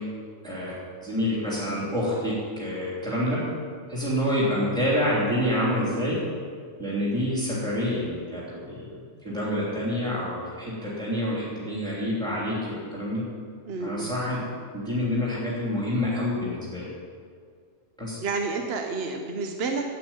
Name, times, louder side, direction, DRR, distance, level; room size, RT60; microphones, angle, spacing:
voice 1, 1.0-3.4 3.9-6.2 6.8-8.9 9.2-13.2 13.8-14.4 14.7-16.8 18.0-18.2, left 1 dB, 5° left, -8 dB, 3.1 m, -27 dB
voice 2, 13.7-14.1 18.2-20.0, right 4 dB, 50° right, 3 dB, 1.0 m, -30 dB
9.0 x 8.7 x 8.9 m, 2.1 s
omnidirectional pair, 1.4 m